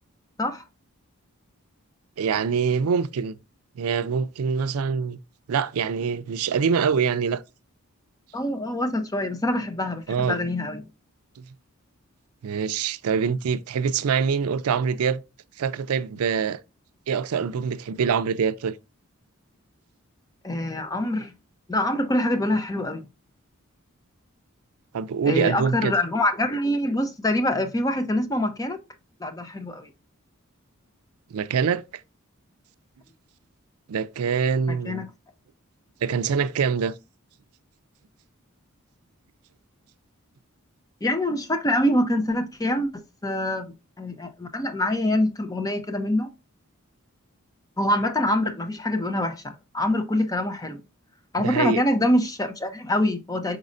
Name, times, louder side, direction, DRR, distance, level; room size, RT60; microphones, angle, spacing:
voice 1, 2.2-3.4 3.8-5.2 5.5-7.4 10.1-10.4 11.4-11.5 12.4-15.2 15.6-16.6 17.1-18.7 24.9-25.9 31.3-31.8 33.9-35.0 36.0-36.9 51.4-51.8, right 6 dB, 85° right, 0.4 m, -24 dB
voice 2, 8.3-10.9 20.4-21.3 21.7-23.0 25.3-28.8 29.2-29.9 34.7-35.1 41.0-46.3 47.8-50.8 51.3-53.6, left 1 dB, 15° left, 0.5 m, -25 dB
5.3 x 4.0 x 2.5 m
head